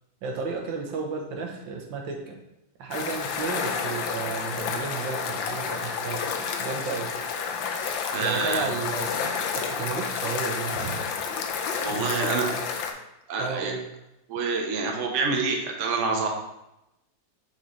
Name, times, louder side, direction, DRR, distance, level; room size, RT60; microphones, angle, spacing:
voice 1, 0.2-2.4 2.8-7.1 8.2-11.0 11.8-12.6 13.4-13.8, right 5 dB, 85° right, 2 dB, 1.7 m, -33 dB
sound 1, 2.9-12.9, left 6 dB, 85° left, 1.4 m, -30 dB
voice 2, 8.1-8.7 10.8-10.9 11.8-12.5 13.3-13.7 14.3-16.3, right 4 dB, 50° right, 1 dB, 1.0 m, -27 dB
6.4 x 5.0 x 3.2 m, 0.90 s
omnidirectional pair, 2.0 m